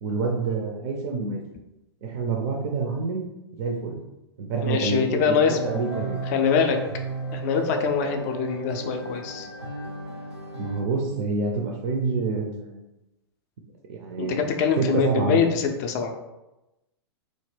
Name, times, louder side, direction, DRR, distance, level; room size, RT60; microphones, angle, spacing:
voice 1, 0.0-1.4 2.0-3.3 3.5-4.0 4.4-6.2 10.6-12.8 13.9-14.5 14.8-15.4, right 4 dB, 40° right, 1 dB, 0.4 m, -27 dB
voice 2, 4.6-5.6 6.3-6.8 7.3-9.5 14.2-16.1, left 6 dB, 40° left, 4 dB, 0.3 m, -24 dB
sound 1, 5.5-10.8, right 1 dB, 85° right, 0.6 m, -34 dB
2.2 x 2.0 x 3.2 m, 0.97 s
figure-of-eight pair, 105°, 14 cm